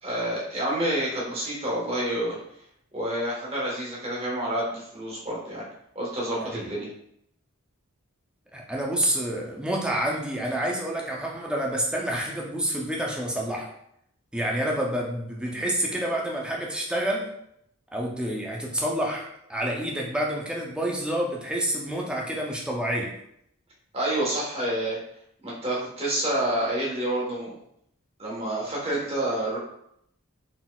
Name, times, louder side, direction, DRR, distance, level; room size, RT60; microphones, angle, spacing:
voice 1, 0.0-2.4 2.9-5.7 5.9-6.9 23.9-25.0 25.4-27.6 28.2-29.6, right 1 dB, 30° right, -5 dB, 1.4 m, -28 dB
voice 2, 6.4-6.7 8.5-13.7 14.3-17.3 17.9-23.1, right 1 dB, 5° right, -2 dB, 0.6 m, -28 dB
4.0 x 3.9 x 2.4 m, 0.74 s
head